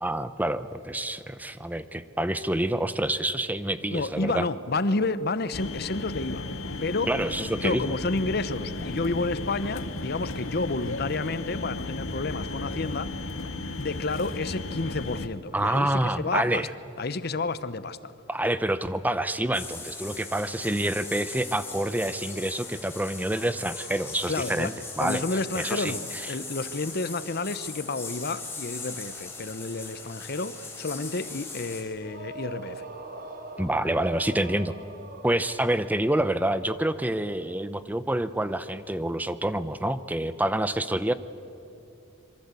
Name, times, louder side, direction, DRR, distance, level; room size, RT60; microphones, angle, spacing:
voice 1, 0.0-4.4 7.1-7.9 15.5-16.7 18.3-25.2 25.6-25.9 26.2-26.3 33.6-34.7 35.2-41.1, right 1 dB, 10° right, 13 dB, 0.6 m, -27 dB
voice 2, 3.9-6.5 6.8-7.1 7.6-13.1 13.8-16.7 17.0-18.1 24.3-24.7 25.0-32.9, left 3 dB, 50° left, 14 dB, 0.9 m, -30 dB
sound 1, 5.5-15.3, left 2 dB, 80° left, 1.7 m, -35 dB
sound 2, 19.5-31.8, left 4 dB, 10° left, 4.6 m, -39 dB
sound 3, 31.9-35.9, right 2 dB, 50° right, 3.3 m, -42 dB
26.5 x 23.5 x 8.3 m, 2.8 s
head